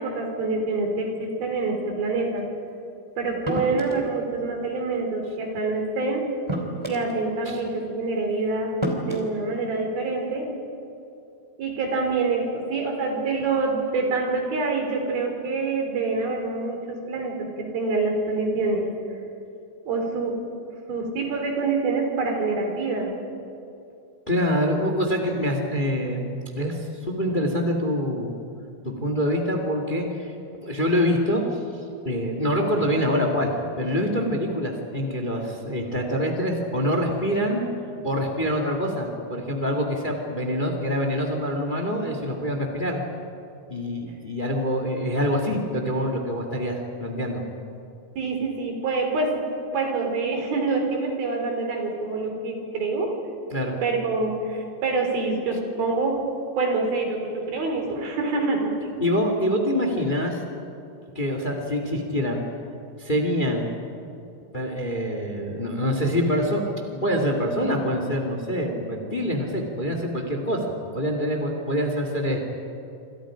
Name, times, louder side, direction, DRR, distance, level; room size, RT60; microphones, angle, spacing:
voice 1, 0.0-2.5 3.2-6.2 6.9-8.7 9.1-10.5 11.6-18.9 19.9-20.3 20.9-23.2 48.2-49.4 49.7-53.1 53.8-56.2 56.6-58.7, right 3 dB, 80° right, 2 dB, 5.4 m, -26 dB
sound 1, 3.5-4.1 5.5-5.7 6.5-7.2 8.2-8.3 8.8-9.3, right 1 dB, 10° right, 3.0 m, -29 dB
voice 2, 24.3-28.4 28.8-30.3 30.6-31.4 32.0-33.5 33.8-37.6 38.0-43.0 43.7-47.4 53.5-53.8 59.0-60.4 61.1-62.4 63.0-63.7 64.5-70.7 70.9-72.4, equal, 15° left, 3 dB, 1.7 m, -25 dB
27.5 x 27.0 x 5.1 m, 2.7 s
omnidirectional pair, 4.2 m